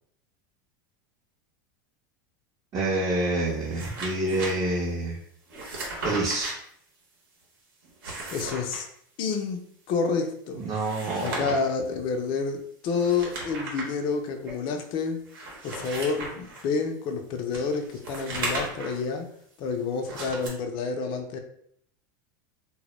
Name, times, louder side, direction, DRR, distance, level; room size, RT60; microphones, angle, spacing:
voice 1, 2.7-5.2 6.0-6.5 10.6-11.5, right 2 dB, 35° right, -5 dB, 0.5 m, -27 dB
sound 1, 3.5-4.5 5.5-6.5 7.8-8.8 10.6-11.7 12.9-13.9 14.5-14.6 15.2-16.6 17.5-19.0 20.0-20.5, right 2 dB, 85° right, 0.8 m, -36 dB
voice 2, 8.3-8.9 9.2-10.6 11.2-15.2 15.6-19.3 19.6-21.4, left 5 dB, 45° left, 5 dB, 0.4 m, -29 dB
2.1 x 2.0 x 2.9 m, 0.67 s
supercardioid pair, 120°, 11 cm